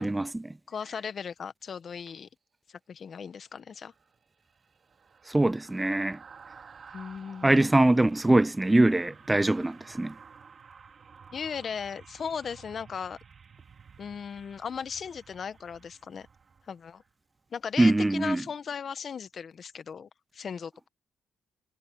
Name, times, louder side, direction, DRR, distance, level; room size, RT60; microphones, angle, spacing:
voice 1, 0.0-0.5 5.3-6.2 7.4-10.1 17.8-18.4, right 2 dB, 15° right, 0.4 m, -23 dB
voice 2, 0.7-2.3 2.9-3.9 6.9-7.7 11.3-13.2 14.0-16.3 16.7-17.0 17.5-20.9, left 6 dB, 55° left, 1.3 m, -37 dB
sound 1, 3.8-17.1 17.5-17.7, right 6 dB, 50° right, 2.9 m, -53 dB
supercardioid pair, 65°, 0 cm